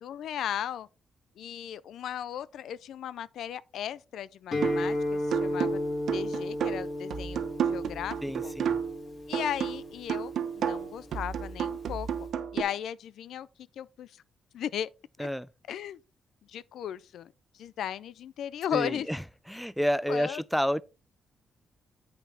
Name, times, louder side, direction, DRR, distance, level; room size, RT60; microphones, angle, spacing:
voice 1, 0.0-0.9 1.4-5.8 6.1-7.4 7.7-8.2 8.4-8.5 9.3-12.1 12.5-13.5 13.8-14.2 14.5-14.9 15.2-15.3 15.7-16.0 16.5-19.1 20.1-20.4, left 10 dB, 80° left, 0.4 m, -36 dB
Guitar, 4.5-12.3, left 1 dB, 50° left, 2.8 m, -35 dB
sound 1, 4.6-4.9 5.3-9.0 9.3-12.6, right 8 dB, 70° right, 1.0 m, -32 dB
voice 2, 8.2-8.8 15.2-15.5 18.7-20.8, equal, ahead, 0.4 m, -30 dB
8.2 x 5.8 x 4.3 m
cardioid pair, 115°, 0 cm